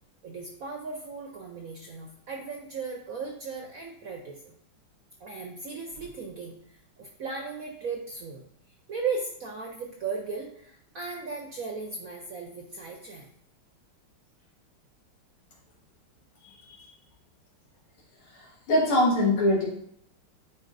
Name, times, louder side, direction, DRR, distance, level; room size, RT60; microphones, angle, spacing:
voice 1, 0.2-4.5 5.2-8.4 8.9-13.3, right 4 dB, 65° right, 1 dB, 0.8 m, -36 dB
voice 2, 18.3-19.7, left 1 dB, 85° left, -3 dB, 2.6 m, -23 dB
9.5 x 4.5 x 2.6 m, 0.68 s
omnidirectional pair, 2.3 m